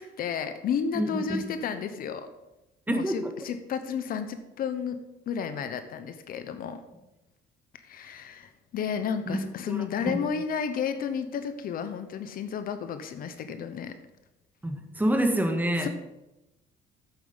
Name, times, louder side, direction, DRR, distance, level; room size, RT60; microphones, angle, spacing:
voice 1, 0.0-2.3 2.9-5.0 5.3-6.8 7.8-13.9 15.8-15.9, left 7 dB, 60° left, 9 dB, 0.9 m, -32 dB
voice 2, 0.9-1.6 2.9-3.3 9.3-9.4 9.7-10.2 14.6-15.9, right 1 dB, 10° right, 4 dB, 1.5 m, -27 dB
8.6 x 7.7 x 5.6 m, 0.95 s
cardioid pair, 110°, 17 cm